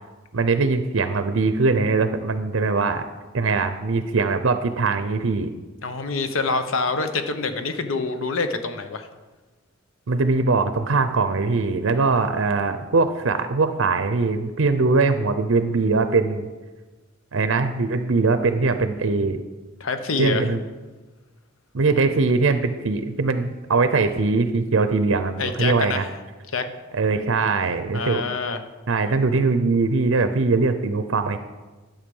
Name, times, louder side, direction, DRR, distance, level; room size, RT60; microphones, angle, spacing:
voice 1, 0.3-3.0 3.3-5.5 10.1-16.5 17.3-19.4 20.2-20.6 21.7-26.1 26.9-28.2 28.9-31.4, right 3 dB, 70° right, 9 dB, 0.6 m, -21 dB
voice 2, 5.8-9.1 19.8-20.4 25.4-26.1 26.5-26.7 27.9-28.6, left 4 dB, 75° left, 8 dB, 0.9 m, -26 dB
11.5 x 7.3 x 5.4 m, 1.2 s
head